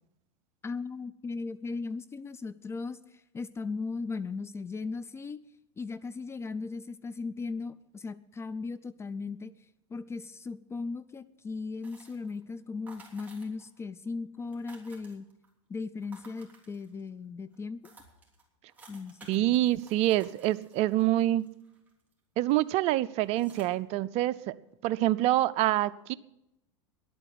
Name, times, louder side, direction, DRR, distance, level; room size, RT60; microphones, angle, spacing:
voice 1, 0.6-5.4 5.8-9.5 9.9-15.3 15.7-17.9 18.9-19.2, left 4 dB, 15° left, 0.4 m, -37 dB
sound 1, 11.8-12.4 12.9-13.8 14.1-14.2 14.4-15.5 16.0-17.1 17.5-17.6 17.8-22.1 22.5-22.8 23.2-23.7, right 3 dB, 10° right, 3.3 m, -55 dB
voice 2, 19.3-21.5 22.4-24.6 24.8-26.1, right 15 dB, 45° right, 0.6 m, -26 dB
11.0 x 8.8 x 9.4 m
hypercardioid pair, 115°, 16 cm